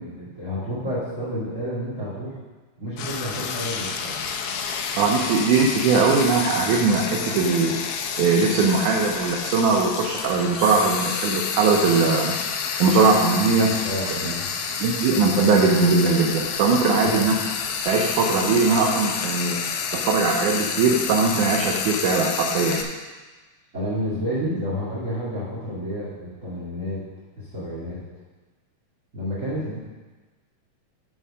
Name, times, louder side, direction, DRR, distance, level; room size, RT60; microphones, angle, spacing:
voice 1, 0.0-2.3 2.8-4.2 13.6-14.5 17.0-17.3 23.7-27.0 27.4-28.0 29.1-29.8, equal, 25° right, -10 dB, 2.6 m, -30 dB
Frying (food), 3.0-22.8, left 6 dB, 80° left, 2.4 m, -29 dB
voice 2, 5.0-7.8 8.2-12.3 12.8-13.8 14.2-14.3 14.8-17.3 17.9-19.6 19.9-22.8, right 4 dB, 75° right, 0 dB, 2.1 m, -20 dB
9.2 x 6.3 x 5.5 m, 1.3 s
omnidirectional pair, 3.9 m